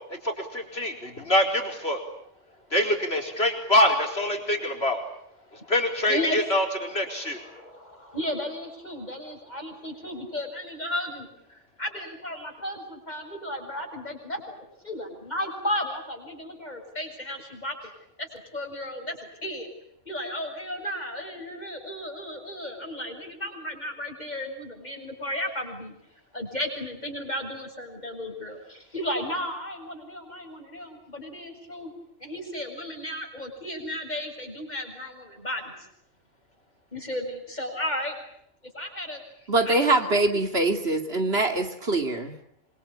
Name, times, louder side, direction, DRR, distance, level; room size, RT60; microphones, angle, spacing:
voice 1, 0.1-2.0 2.7-5.0 5.5-7.4, left 1 dB, 55° left, 3 dB, 4.7 m, -25 dB
voice 2, 6.1-6.4 6.9-17.9 18.2-19.7 20.1-25.9 26.3-31.9 32.2-35.8 36.9-38.2 38.6-40.1, left 1 dB, 35° left, 3 dB, 7.4 m, -34 dB
voice 3, 39.5-42.4, right 2 dB, 55° right, 6 dB, 2.9 m, -23 dB
26.5 x 24.5 x 8.8 m, 0.71 s
omnidirectional pair, 1.2 m